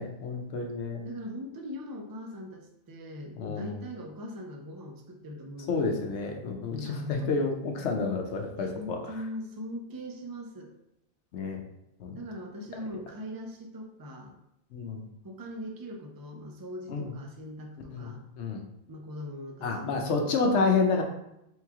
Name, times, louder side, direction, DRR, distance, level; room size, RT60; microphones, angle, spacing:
voice 1, 0.0-1.0 3.4-3.8 5.7-9.0 11.3-11.6 12.0-12.2 14.7-15.0 16.9-17.1 17.9-18.1 18.4-18.6 19.6-21.0, left 4 dB, 75° left, 3 dB, 1.0 m, -29 dB
voice 2, 1.0-5.9 6.7-7.3 8.6-10.7 12.1-14.3 15.2-18.2 18.9-20.5, equal, 35° right, 1 dB, 0.3 m, -41 dB
3.5 x 3.1 x 3.5 m, 0.83 s
omnidirectional pair, 1.2 m